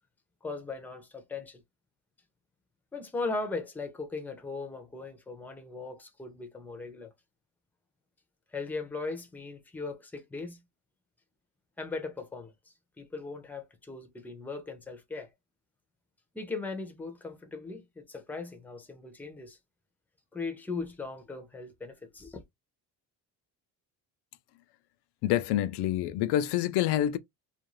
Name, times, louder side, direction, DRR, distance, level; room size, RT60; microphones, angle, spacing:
voice 1, 0.4-1.6 2.9-7.1 8.5-10.6 11.8-12.5 13.0-15.3 16.3-19.6 20.3-22.4, left 3 dB, 5° left, 0.5 m, -38 dB
voice 2, 25.2-27.2, left 12 dB, 85° left, 0.5 m, -27 dB
2.4 x 2.3 x 3.0 m
cardioid pair, 150°, 39 cm